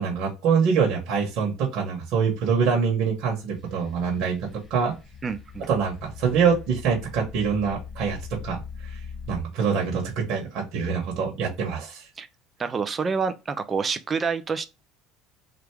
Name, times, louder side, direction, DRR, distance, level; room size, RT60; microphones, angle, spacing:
voice 1, 0.0-5.0 5.7-12.1, right 6 dB, 60° right, 1.2 m, -25 dB
sound 1, 3.6-9.4, left 6 dB, 15° left, 0.8 m, -41 dB
voice 2, 5.2-5.7 12.2-12.3 12.6-14.7, right 5 dB, 25° right, 0.5 m, -27 dB
3.4 x 2.5 x 4.5 m
cardioid pair, 140°, 0 cm